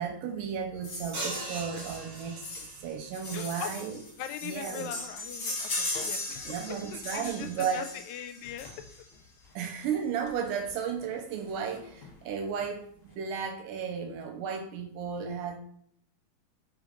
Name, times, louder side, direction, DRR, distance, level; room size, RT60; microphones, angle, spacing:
voice 1, 0.0-4.0 4.4-4.9 6.4-7.9 9.6-15.6, right 7 dB, 80° right, 4 dB, 2.1 m, -34 dB
sound 1, 0.8-9.2 10.2-10.3 10.7-10.8 11.0-11.1 11.5-12.1 12.6-12.7, left 2 dB, 45° left, 1.9 m, -38 dB
sound 2, 1.1-2.9, right 2 dB, 45° right, 1.3 m, -38 dB
voice 2, 3.3-3.7 4.2-6.5 6.9-8.7, left 9 dB, 85° left, 9 dB, 2.2 m, -40 dB
4.9 x 3.7 x 5.1 m, 0.67 s
omnidirectional pair, 4.1 m